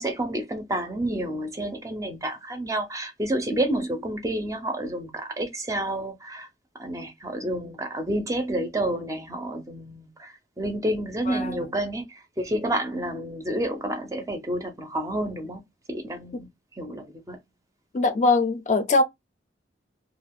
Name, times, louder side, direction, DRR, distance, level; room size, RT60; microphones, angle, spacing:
voice 1, 0.0-6.5 6.7-15.6 15.9-16.5 16.8-17.4, right 1 dB, 20° right, 0.4 m, -29 dB
voice 2, 11.3-11.6 17.9-19.0, left 3 dB, 40° left, 0.4 m, -22 dB
2.4 x 2.2 x 3.5 m
head